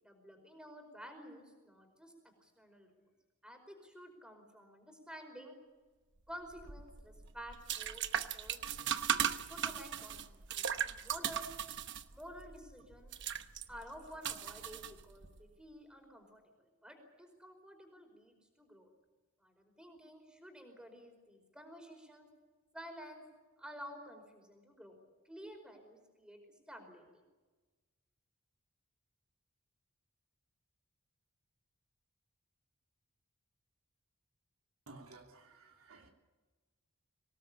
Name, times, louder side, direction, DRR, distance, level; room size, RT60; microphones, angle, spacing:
voice 1, 0.0-2.1 2.4-3.0 3.4-5.6 6.3-8.6 9.5-11.5 12.1-13.1 13.7-18.9 19.4-22.3 22.7-23.2 23.6-25.0 25.2-27.2, equal, 5° right, 4 dB, 5.0 m, -52 dB
sound 1, 6.5-15.4, right 9 dB, 55° right, 1.0 m, -38 dB
voice 2, 34.9-36.1, right 2 dB, 75° right, 2 dB, 3.0 m, -55 dB
24.5 x 18.5 x 8.6 m, 1.3 s
head